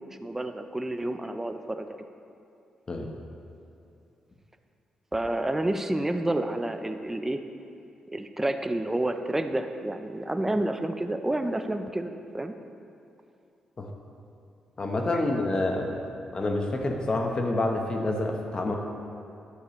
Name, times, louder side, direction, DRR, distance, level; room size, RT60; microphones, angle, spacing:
voice 1, 0.2-2.0 5.1-7.4 8.1-12.5, right 1 dB, 15° right, 7 dB, 0.6 m, -29 dB
voice 2, 14.8-16.0 16.3-18.7, left 2 dB, 35° left, 2 dB, 1.1 m, -27 dB
11.5 x 6.7 x 3.2 m, 2.6 s
cardioid pair, 70°, 2 cm